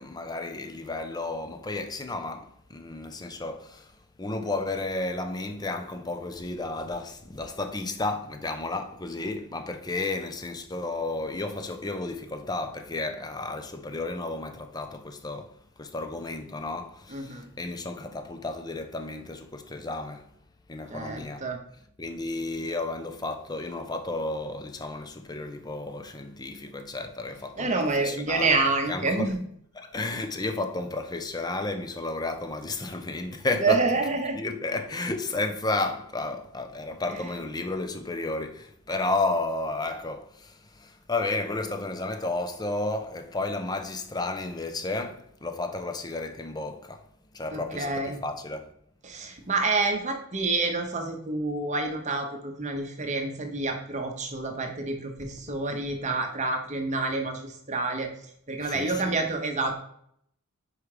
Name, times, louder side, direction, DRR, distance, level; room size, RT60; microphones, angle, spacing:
voice 1, 0.0-20.3 20.7-21.4 22.0-28.6 28.9-29.4 29.7-33.8 34.4-47.1 47.3-48.7 55.5-55.6 58.6-59.2, left 2 dB, 20° left, 0.5 m, -32 dB
voice 2, 17.1-17.5 20.9-21.6 27.6-29.4 33.6-34.4 47.5-48.2 49.0-58.1 58.5-59.8, right 3 dB, 30° right, 0.9 m, -28 dB
4.9 x 4.9 x 4.8 m
head